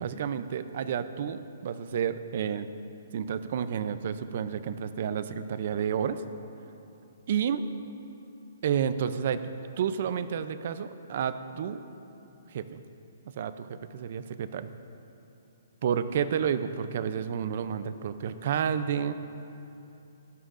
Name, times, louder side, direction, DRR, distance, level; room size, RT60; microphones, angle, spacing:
voice 1, 0.0-2.7 3.1-6.2 7.3-7.6 8.6-9.4 9.8-11.8 12.5-12.8 13.4-14.7 15.8-19.1, right 8 dB, 40° right, 12 dB, 0.4 m, -30 dB
18.5 x 11.5 x 2.5 m, 2.9 s
hypercardioid pair, 175°, 0 cm